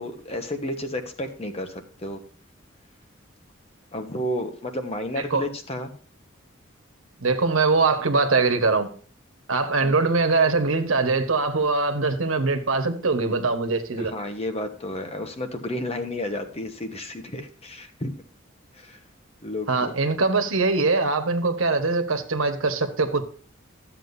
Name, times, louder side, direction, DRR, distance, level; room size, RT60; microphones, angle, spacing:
voice 1, 0.0-2.2 3.9-5.9 9.8-10.0 14.0-18.1 18.7-19.0 19.4-19.9, left 1 dB, 30° left, 6 dB, 1.1 m, -32 dB
voice 2, 7.2-8.9 9.5-14.1 19.7-23.2, right 3 dB, 75° right, 7 dB, 1.3 m, -22 dB
12.5 x 7.7 x 2.6 m, 0.42 s
head